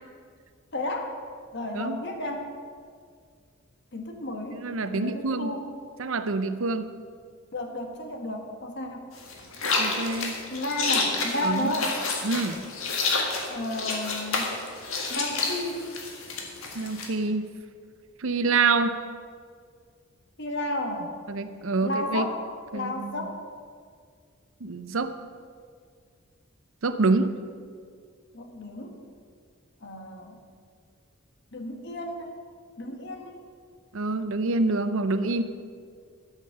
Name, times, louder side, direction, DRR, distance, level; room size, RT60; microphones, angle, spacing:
voice 1, 0.7-1.1 1.5-2.5 3.9-4.6 4.9-5.7 7.5-9.1 10.5-12.0 13.5-14.5 15.1-15.8 20.4-21.1 21.8-22.4 22.7-23.4 28.3-28.9 29.8-30.4 31.5-32.3 32.8-33.4, left 1 dB, 55° left, 3 dB, 1.6 m, -32 dB
voice 2, 4.5-5.5 6.0-6.9 9.8-10.4 11.4-11.7 12.2-12.6 16.7-17.5 18.2-19.0 21.3-22.3 22.7-23.2 24.6-25.1 26.8-27.3 33.9-35.4, right 3 dB, 70° right, 10 dB, 0.6 m, -26 dB
sound 1, 9.2-17.1, left 3 dB, 75° left, 1.8 m, -29 dB
13.0 x 7.4 x 6.7 m, 2.1 s
head